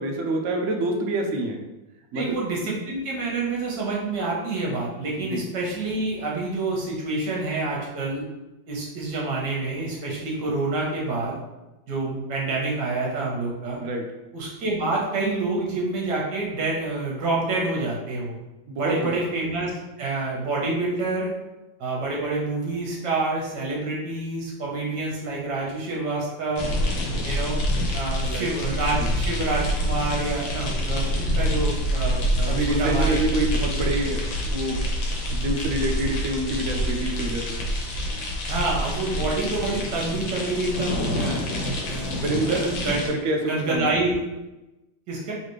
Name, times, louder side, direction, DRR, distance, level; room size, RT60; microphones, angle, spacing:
voice 1, 0.0-1.6 2.1-2.3 5.3-5.4 13.8-14.0 18.7-19.3 28.2-28.5 29.0-29.1 32.5-34.8 35.3-37.6 42.1-42.8 43.1-44.0, right 2 dB, 85° right, 2 dB, 0.7 m, -27 dB
voice 2, 2.1-8.2 8.7-11.4 11.9-13.8 14.3-18.4 18.8-19.7 20.0-21.3 21.8-26.7 27.2-27.6 27.9-33.2 38.5-41.5 41.8-43.0 43.5-44.2 45.1-45.3, right 2 dB, 65° right, -3 dB, 1.6 m, -27 dB
sound 1, 26.6-43.1, equal, 80° left, 1.6 m, -26 dB
4.0 x 3.2 x 3.1 m, 1.0 s
omnidirectional pair, 2.1 m